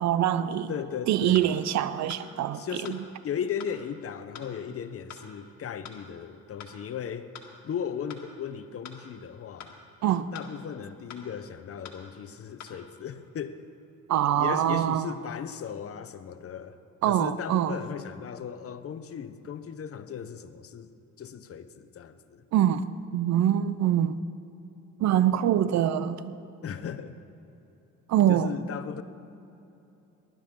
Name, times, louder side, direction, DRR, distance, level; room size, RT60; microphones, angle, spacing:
voice 1, 0.0-0.7 1.1-3.0 10.0-10.3 14.1-15.1 17.0-17.8 22.5-22.9 23.1-24.2 25.0-26.4 28.1-28.5, right 11 dB, 65° right, 14 dB, 0.6 m, -24 dB
voice 2, 0.7-1.5 2.5-7.3 7.6-9.8 10.3-13.6 14.4-16.8 17.1-20.9 21.2-22.5 26.6-27.1 28.3-29.0, left 8 dB, 50° left, 12 dB, 0.8 m, -36 dB
sound 1, 1.3-1.5 2.1-2.3 2.8-3.0 3.6-3.8 4.3-4.5 5.1-5.3 5.8-6.0 6.6-6.8 7.3-7.5 8.1-8.3 8.8-9.0 9.6-9.8 10.3-10.5 11.1-11.3 11.8-12.0 12.6-12.7, left 7 dB, 65° left, 1.7 m, -44 dB
19.5 x 12.0 x 3.7 m, 2.9 s
cardioid pair, 90°, 30 cm